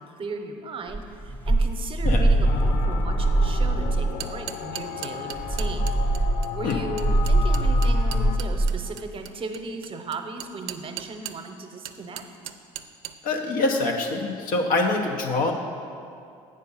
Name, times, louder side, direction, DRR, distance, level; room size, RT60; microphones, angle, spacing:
voice 1, 0.0-5.9 6.5-12.2, right 3 dB, 40° right, 5 dB, 0.8 m, -36 dB
sound 1, 0.9-4.1 5.3-8.8, right 1 dB, 10° left, 0.6 m, -22 dB
sound 2, 2.4-8.4, left 9 dB, 85° left, 0.4 m, -35 dB
sound 3, 4.0-11.5 11.9-13.2, right 13 dB, 80° right, 0.4 m, -38 dB
voice 2, 13.2-15.5, left 2 dB, 70° left, 2 dB, 1.0 m, -25 dB
7.7 x 5.3 x 5.5 m, 2.5 s
supercardioid pair, 80°, 15 cm